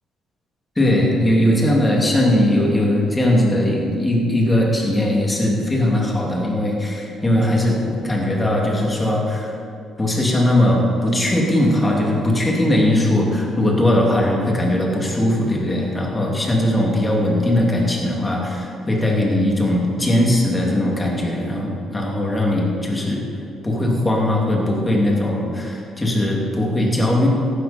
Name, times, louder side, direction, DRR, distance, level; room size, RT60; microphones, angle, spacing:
voice 1, 0.8-9.6 10.0-23.2 23.6-27.3, left 1 dB, 15° left, -2 dB, 2.9 m, -19 dB
14.5 x 12.5 x 4.5 m, 2.5 s
cardioid pair, 115°, 0 cm